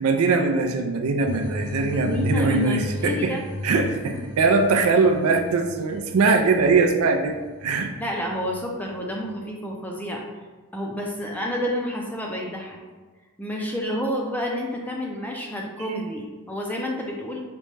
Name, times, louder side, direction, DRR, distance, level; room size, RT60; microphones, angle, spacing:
voice 1, 0.0-3.4 3.6-7.9, right 4 dB, 80° right, 3 dB, 0.4 m, -21 dB
sound 1, 1.3-9.3, left 2 dB, 55° left, 0.6 m, -35 dB
voice 2, 1.9-3.4 8.0-10.2 10.7-12.8 13.4-17.4, equal, 10° left, -1 dB, 0.4 m, -29 dB
5.1 x 2.2 x 3.1 m, 1.3 s
head